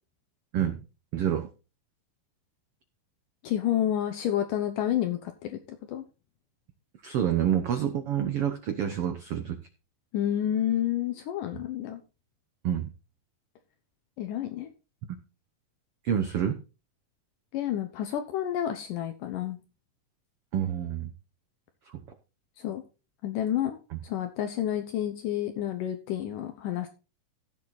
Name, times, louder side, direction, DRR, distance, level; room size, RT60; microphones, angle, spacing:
voice 1, 0.5-0.8 1.1-1.5 7.0-9.6 12.6-12.9 16.0-16.6 20.5-21.1 21.9-22.0 23.9-24.0, right 9 dB, 80° right, 7 dB, 1.3 m, -28 dB
voice 2, 3.4-6.0 10.1-12.0 14.2-14.7 17.5-19.6 22.6-22.8 23.2-23.8 24.0-26.9, left 11 dB, 75° left, 7 dB, 2.5 m, -29 dB
15.5 x 7.3 x 4.1 m, 0.32 s
omnidirectional pair, 4.0 m